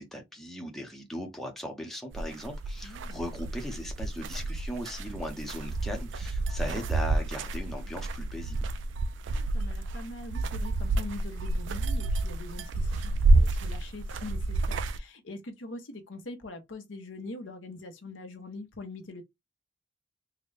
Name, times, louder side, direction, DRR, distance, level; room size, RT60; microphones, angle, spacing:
voice 1, 0.0-8.6, equal, ahead, 0.7 m, -38 dB
sound 1, 2.1-15.0, right 2 dB, 75° right, 0.4 m, -29 dB
voice 2, 2.8-3.2 9.3-19.2, left 2 dB, 85° left, 0.9 m, -43 dB
3.8 x 2.2 x 3.2 m
head